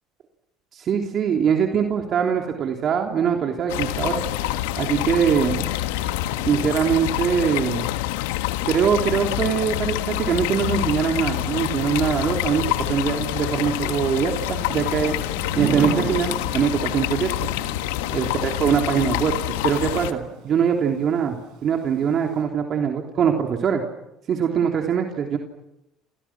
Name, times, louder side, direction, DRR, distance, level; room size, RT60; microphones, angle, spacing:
voice 1, 0.7-4.2 4.8-5.6 6.4-7.9 8.6-15.2 15.6-17.5 18.1-19.4 19.6-23.8 24.3-25.4, right 7 dB, 50° right, 2 dB, 3.3 m, -22 dB
sound 1, 3.7-20.1, left 14 dB, 85° left, 1.5 m, -26 dB
Thunder / Rain, 9.7-22.4, right 7 dB, 75° right, 7.8 m, -37 dB
29.0 x 27.5 x 6.1 m, 0.87 s
supercardioid pair, 85°, 0 cm